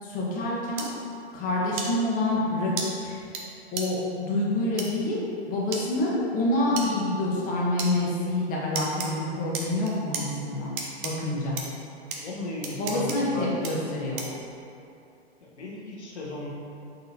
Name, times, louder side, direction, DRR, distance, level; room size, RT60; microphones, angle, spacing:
voice 1, 0.0-0.9 1.3-3.2 3.7-5.2 5.5-10.7 11.0-11.6 12.8-14.3, left 1 dB, 25° left, -4 dB, 0.8 m, -27 dB
sound 1, 0.8-0.9 1.8-1.9 2.8-2.9 3.3-3.4 3.8-3.9 4.8-4.9 5.7-5.8 6.8-6.9 7.8-7.9 8.7-9.1 9.5-10.2 10.8-11.1 11.6-11.7 12.1-12.2 12.6-13.2 13.6-13.7 14.2-14.4, right 5 dB, 50° right, 0.7 m, -32 dB
voice 2, 12.2-13.7 15.4-16.5, left 2 dB, 90° left, -4 dB, 0.9 m, -36 dB
4.1 x 3.7 x 2.8 m, 2.6 s
hypercardioid pair, 110°, 33 cm